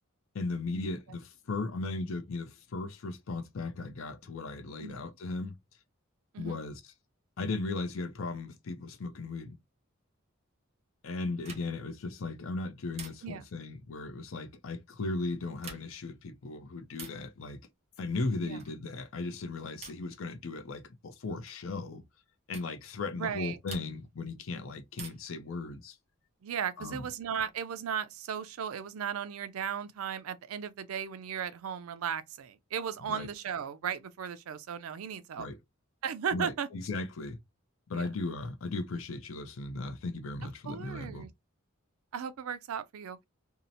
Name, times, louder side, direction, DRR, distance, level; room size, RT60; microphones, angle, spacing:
voice 1, 0.3-5.5 6.4-6.9 7.4-9.6 11.0-17.6 18.0-22.0 22.5-26.0 26.8-27.1 33.0-33.3 35.4-35.6 36.3-37.4 37.9-41.3, left 3 dB, 70° left, 0.5 m, -37 dB
sound 1, 11.4-11.9 12.9-13.5 15.5-16.1 16.9-17.3 18.6-18.9 19.8-20.2 21.5-21.7 22.5-22.8 23.7-24.2 24.9-25.4 26.9-27.6, right 5 dB, 30° right, 0.6 m, -48 dB
voice 2, 23.2-23.6 26.4-35.5 36.0-36.7 37.9-38.1 40.7-41.3 42.1-43.2, right 7 dB, 80° right, 0.4 m, -36 dB
2.7 x 2.0 x 2.6 m
head